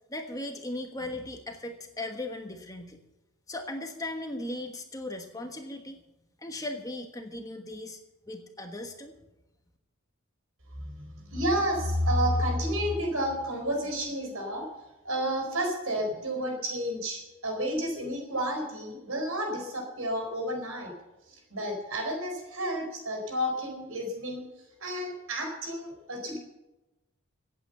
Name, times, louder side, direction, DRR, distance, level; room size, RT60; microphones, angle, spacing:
voice 1, 0.1-3.0 3.5-6.0 6.4-8.0 8.3-9.2, left 1 dB, 15° left, 4 dB, 1.2 m, -37 dB
voice 2, 10.9-14.6 15.0-20.9 21.5-24.4 24.8-26.4, equal, 70° right, 3 dB, 4.4 m, -30 dB
16.5 x 8.8 x 6.8 m, 1.0 s
head